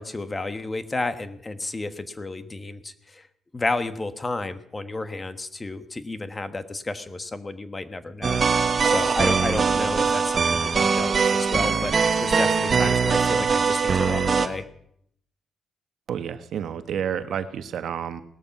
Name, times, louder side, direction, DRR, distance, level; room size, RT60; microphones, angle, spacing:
voice 1, 0.0-3.3 3.5-8.4 8.8-14.6, left 2 dB, 20° left, 11 dB, 1.3 m, -31 dB
sound 1, 8.2-14.5, right 5 dB, 40° right, 1.3 m, -22 dB
voice 2, 16.1-18.2, right 8 dB, 65° right, 10 dB, 1.2 m, -30 dB
18.5 x 13.0 x 6.0 m, 0.68 s
cardioid pair, 90°, 0 cm